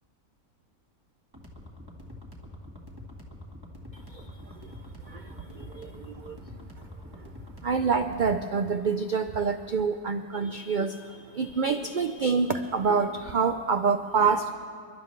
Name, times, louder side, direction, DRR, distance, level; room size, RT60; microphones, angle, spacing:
sound 1, 1.3-8.4, left 1 dB, 15° right, 1.5 m, -45 dB
voice 1, 3.9-4.7 5.0-6.4 7.2-7.3 7.6-14.5, right 5 dB, 80° right, 8 dB, 0.4 m, -27 dB
29.0 x 11.5 x 3.2 m, 2.3 s
omnidirectional pair, 1.5 m